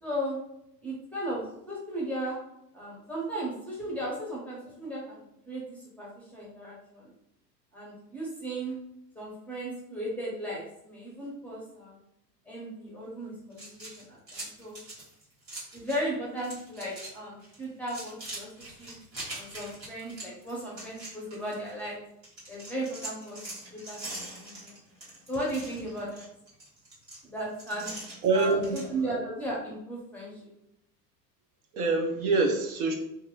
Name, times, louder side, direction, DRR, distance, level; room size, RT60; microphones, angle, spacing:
voice 1, 0.0-0.4 0.8-2.4 2.7-7.1 7.7-8.7 9.1-12.0 12.5-14.8 15.7-18.9 19.3-22.0 22.5-23.4 23.7-24.8 25.3-26.2 27.2-27.9 28.3-30.5, right 1 dB, 5° left, -5 dB, 0.7 m, -36 dB
sound 1, 13.5-16.1 16.4-17.1 17.4-21.9 22.2-28.9, right 1 dB, 85° right, 1.4 m, -43 dB
voice 2, 28.2-28.8 31.7-32.9, right 3 dB, 60° right, 2 dB, 0.7 m, -25 dB
2.7 x 2.5 x 2.3 m, 0.79 s
figure-of-eight pair, 85°, 49 cm